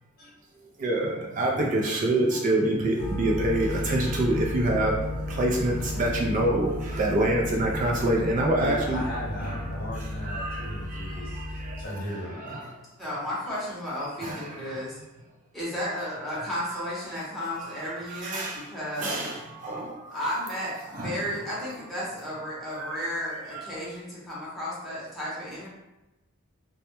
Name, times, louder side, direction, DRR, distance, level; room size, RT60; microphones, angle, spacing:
voice 1, 0.8-9.0 9.4-12.7 14.2-14.9 16.4-16.5 17.6-18.7 19.0-20.2 20.9-21.2 22.7-23.1 23.5-23.8, right 1 dB, 40° right, -1 dB, 0.3 m, -27 dB
sound 1, 3.0-11.8, left 1 dB, 85° left, 0.5 m, -34 dB
voice 2, 8.5-12.4, equal, 45° left, -5 dB, 0.8 m, -36 dB
voice 3, 13.0-15.0 15.5-19.3 20.1-25.7, equal, ahead, -9 dB, 0.8 m, -33 dB
2.1 x 2.1 x 2.9 m, 0.99 s
head